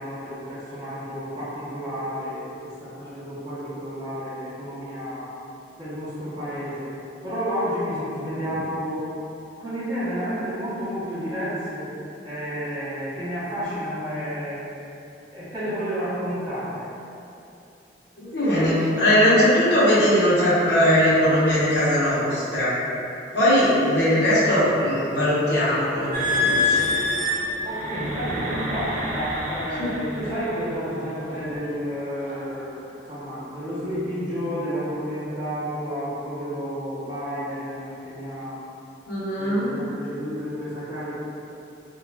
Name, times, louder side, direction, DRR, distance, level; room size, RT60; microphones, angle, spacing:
voice 1, 0.0-5.3 5.8-6.9 7.2-9.1 9.6-11.9 12.2-14.7 15.3-16.9 27.6-38.6 39.4-41.1, equal, 20° right, -12 dB, 0.7 m, -31 dB
voice 2, 18.2-22.8 23.3-26.9 29.8-29.9 39.1-39.7, equal, 65° left, -9 dB, 0.8 m, -20 dB
sound 1, 26.1-30.6 31.3-31.5 32.1-32.5, left 2 dB, 40° right, 0.3 m, -26 dB
3.0 x 2.3 x 2.2 m, 2.8 s
head